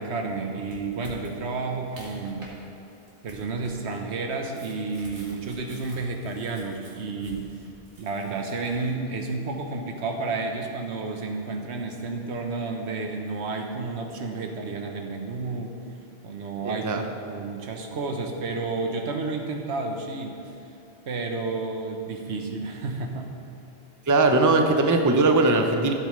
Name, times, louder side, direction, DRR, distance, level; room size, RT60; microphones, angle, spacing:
voice 1, 0.0-2.5 3.2-7.6 8.0-15.7 16.2-20.4 21.1-23.3, right 3 dB, 85° right, 3 dB, 1.2 m, -31 dB
sound 1, 0.7-2.6 2.9-8.9, equal, 55° right, 2.4 m, -48 dB
voice 2, 16.6-17.0 24.1-25.9, right 3 dB, 20° right, 4 dB, 0.5 m, -20 dB
14.5 x 8.3 x 3.2 m, 2.7 s
omnidirectional pair, 1.1 m